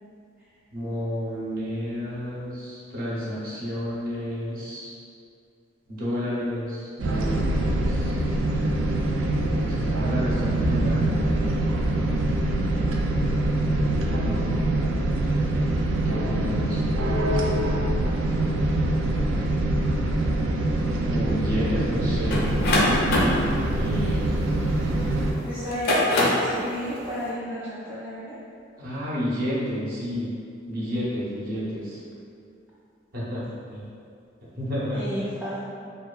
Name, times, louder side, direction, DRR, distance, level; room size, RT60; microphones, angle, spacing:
voice 1, 0.7-4.9 5.9-8.2 9.6-11.4 13.7-13.9 16.1-17.0 21.0-22.5 23.7-24.5 28.8-30.3 30.7-32.0 33.1-33.8 34.6-35.3, equal, 50° right, -8 dB, 0.6 m, -31 dB
sound 1, 7.0-25.3, right 1 dB, 85° right, 0.3 m, -24 dB
sound 2, 22.3-25.0 25.6-26.5, left 1 dB, 55° left, 0.4 m, -23 dB
voice 2, 25.5-28.4 34.9-35.7, equal, 10° right, -10 dB, 0.3 m, -32 dB
2.7 x 2.2 x 2.3 m, 2.4 s
head